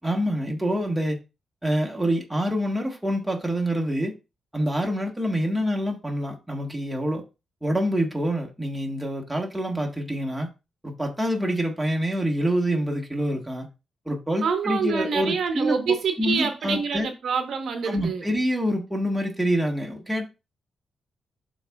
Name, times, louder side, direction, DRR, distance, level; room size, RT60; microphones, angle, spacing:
voice 1, 0.0-1.2 1.6-4.1 4.5-7.2 7.6-10.5 10.8-13.7 14.0-15.8 16.2-17.1 17.8-20.3, equal, 5° right, 1.4 m, -26 dB
voice 2, 14.4-18.2, right 5 dB, 65° right, 1.0 m, -26 dB
12.0 x 4.1 x 2.3 m
wide cardioid pair, 145°, 0 cm